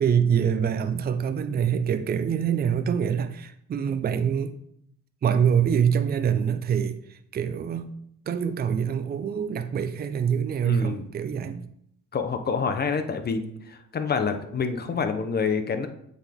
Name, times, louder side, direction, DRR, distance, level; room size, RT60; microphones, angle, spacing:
voice 1, 0.0-4.5 5.2-7.9 8.3-11.6, right 8 dB, 30° right, 10 dB, 0.5 m, -25 dB
voice 2, 10.6-11.1 12.1-15.9, left 5 dB, 35° left, 7 dB, 0.8 m, -27 dB
8.0 x 3.8 x 3.5 m, 0.71 s
cardioid pair, 90°, 30 cm